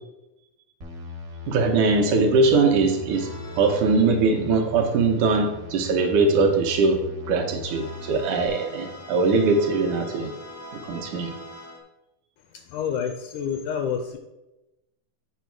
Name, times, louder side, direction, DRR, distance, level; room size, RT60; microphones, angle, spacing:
sound 1, 0.8-8.5, left 4 dB, 55° right, 1.1 m, -39 dB
voice 1, 1.5-3.3 3.6-7.0 7.3-10.3 10.9-11.3, right 3 dB, 75° right, 3 dB, 2.0 m, -21 dB
sound 2, 3.1-5.0 7.6-11.8, equal, 20° left, 0.4 m, -42 dB
voice 2, 12.5-14.2, left 7 dB, 80° left, 5 dB, 1.8 m, -28 dB
8.2 x 4.6 x 4.5 m, 0.97 s
omnidirectional pair, 4.0 m